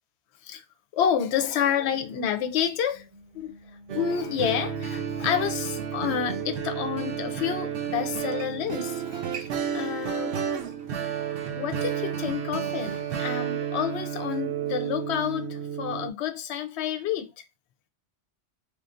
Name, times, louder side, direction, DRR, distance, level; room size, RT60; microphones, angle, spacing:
voice 1, 0.9-3.0 3.3-3.6 3.9-9.2 9.7-10.4 11.5-17.4, left 8 dB, 75° left, 0.8 m, -29 dB
Alarm, 1.5-15.0, right 1 dB, 40° right, 0.8 m, -54 dB
sound 1, 3.9-16.1, right 8 dB, 75° right, 0.9 m, -31 dB
3.5 x 2.5 x 2.4 m
omnidirectional pair, 1.2 m